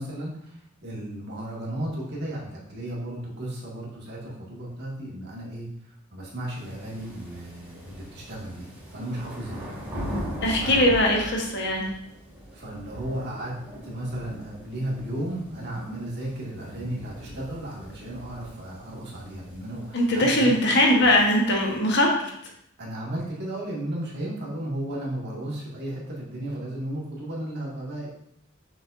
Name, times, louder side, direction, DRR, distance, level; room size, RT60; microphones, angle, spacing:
voice 1, 0.0-9.7 10.6-11.0 12.5-13.6 13.8-20.5 21.7-21.8 22.8-28.1, right 1 dB, 55° right, -5 dB, 2.1 m, -34 dB
sound 1, 6.5-21.8, equal, 10° right, 2.4 m, -40 dB
voice 2, 10.4-11.9 19.9-22.3, left 1 dB, 55° left, 0 dB, 1.3 m, -21 dB
7.1 x 5.9 x 2.7 m, 0.73 s
head